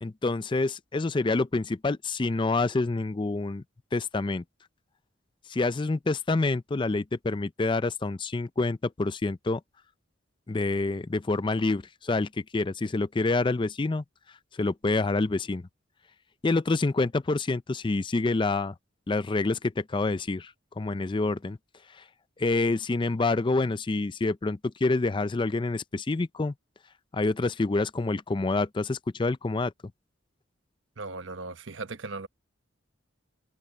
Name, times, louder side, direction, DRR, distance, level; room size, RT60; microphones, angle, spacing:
voice 1, 0.0-3.6 3.9-4.4 5.5-9.6 10.5-14.0 14.6-15.7 16.4-18.7 19.1-21.6 22.0-22.1 22.4-26.5 27.1-29.7, left 3 dB, 25° left, 0.4 m, -27 dB
voice 2, 31.0-32.3, right 3 dB, 75° right, 1.0 m, -37 dB
head